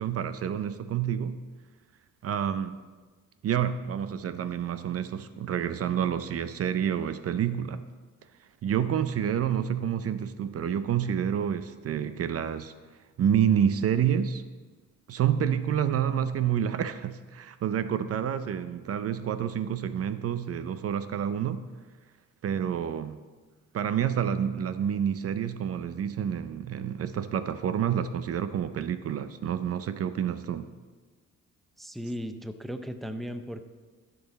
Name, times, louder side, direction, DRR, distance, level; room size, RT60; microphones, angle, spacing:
voice 1, 0.0-1.4 2.2-2.8 3.4-7.8 8.6-12.7 13.2-14.4 15.1-21.6 22.4-23.2 23.7-30.7, right 9 dB, 50° right, 12 dB, 0.5 m, -28 dB
voice 2, 31.8-33.7, equal, ahead, 9 dB, 0.5 m, -36 dB
13.5 x 6.1 x 4.1 m, 1.4 s
cardioid pair, 90°, 30 cm